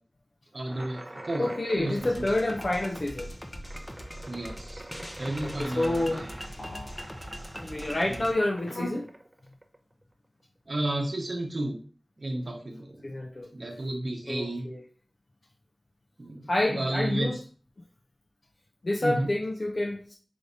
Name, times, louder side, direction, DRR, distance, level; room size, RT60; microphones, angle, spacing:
voice 1, 0.5-2.3 4.3-4.8 5.2-6.3 8.1-8.2 10.7-11.8 12.2-13.2 13.5-14.7 16.2-17.3 19.0-19.3, right 1 dB, 65° right, 0.9 m, -32 dB
sound 1, 0.7-10.0, right 1 dB, 30° right, 0.5 m, -45 dB
voice 2, 1.4-3.3 5.4-6.2 7.6-9.1 13.0-13.5 14.3-14.8 16.5-17.4 18.8-20.2, left 1 dB, 60° left, 0.5 m, -28 dB
sound 2, 1.9-8.3, equal, 20° left, 0.6 m, -41 dB
sound 3, 2.6-3.0 6.6-7.0, left 1 dB, 85° left, 0.9 m, -43 dB
5.1 x 3.2 x 2.6 m
wide cardioid pair, 55°, 0 cm